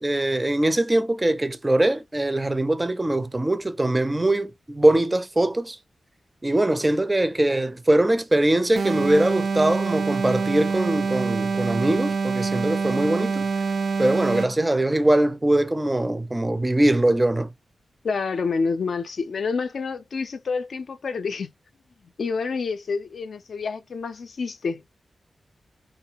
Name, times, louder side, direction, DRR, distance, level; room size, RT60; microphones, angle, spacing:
voice 1, 0.0-5.8 6.4-13.5 14.0-17.5, right 1 dB, 20° right, 0.4 m, -22 dB
sound 1, 8.8-14.7, right 4 dB, 75° right, 0.4 m, -25 dB
voice 2, 18.0-21.5 22.2-24.8, left 4 dB, 70° left, 0.4 m, -28 dB
3.5 x 2.2 x 2.8 m
wide cardioid pair, 95°, 0 cm